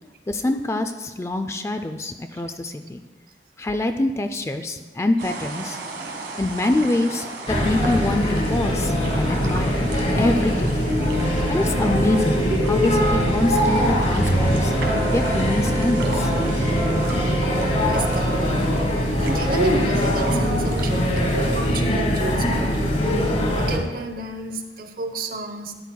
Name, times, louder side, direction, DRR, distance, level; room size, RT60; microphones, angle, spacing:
voice 1, 0.3-3.0 3.6-5.8 6.4-9.9 10.2-11.0 11.5-14.7 15.1-16.3, left 2 dB, 15° left, 7 dB, 0.3 m, -25 dB
sound 1, 5.2-21.5, right 3 dB, 90° right, 1.3 m, -37 dB
sound 2, 7.5-23.8, equal, 40° left, 1.8 m, -22 dB
Wind instrument woodwind instrument, 11.0-18.9, right 5 dB, 25° right, 1.6 m, -34 dB
voice 2, 17.9-22.8 23.6-25.7, right 2 dB, 55° right, 6 dB, 0.8 m, -30 dB
12.5 x 11.0 x 2.2 m, 1.3 s
head